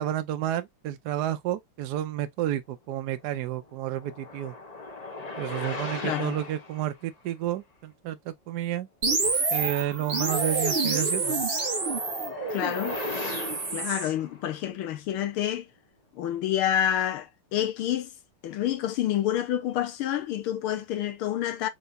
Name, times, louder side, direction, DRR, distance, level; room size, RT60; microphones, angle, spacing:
voice 1, 0.0-4.5 5.4-8.9 9.5-11.4, right 12 dB, 75° right, 0.9 m, -31 dB
sound 1, 3.3-6.9 10.8-14.6, left 3 dB, 40° left, 0.5 m, -38 dB
voice 2, 6.0-6.4 12.5-13.0 13.7-15.7 16.1-18.1 18.4-21.7, left 11 dB, 80° left, 1.8 m, -28 dB
sound 2, 9.0-14.1, right 3 dB, 30° right, 1.2 m, -28 dB
4.6 x 4.0 x 2.6 m
omnidirectional pair, 2.4 m